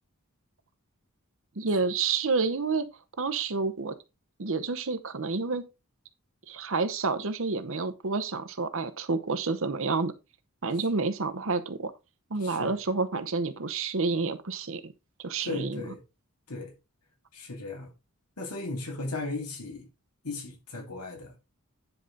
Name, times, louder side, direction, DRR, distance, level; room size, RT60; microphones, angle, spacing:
voice 1, 1.6-2.9 3.2-4.0 4.4-5.7 6.5-10.1 10.6-11.9 12.3-14.9 15.2-15.8, right 4 dB, 60° right, 0.9 m, -29 dB
voice 2, 12.4-12.7 15.4-16.0 16.5-16.7 17.3-17.9 18.4-19.9 20.2-21.3, left 2 dB, 90° left, 2.8 m, -36 dB
10.0 x 4.9 x 3.9 m
head